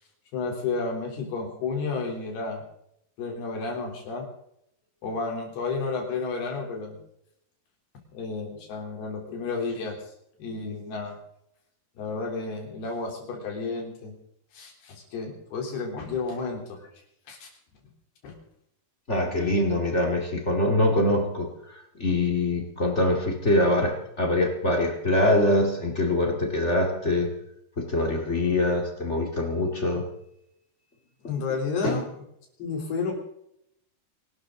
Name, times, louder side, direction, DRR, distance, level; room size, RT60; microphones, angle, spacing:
voice 1, 0.3-2.6 3.2-4.3 5.0-7.0 8.1-10.0 10.4-11.2 12.0-14.1 14.5-16.8 17.3-17.5 18.2-18.3 31.3-32.2 32.6-33.1, left 4 dB, 70° left, 1 dB, 5.4 m, -31 dB
voice 2, 19.1-27.3 27.9-30.0 31.8-32.0, left 1 dB, 25° left, 2 dB, 1.5 m, -24 dB
25.5 x 12.5 x 3.9 m, 0.76 s
omnidirectional pair, 4.7 m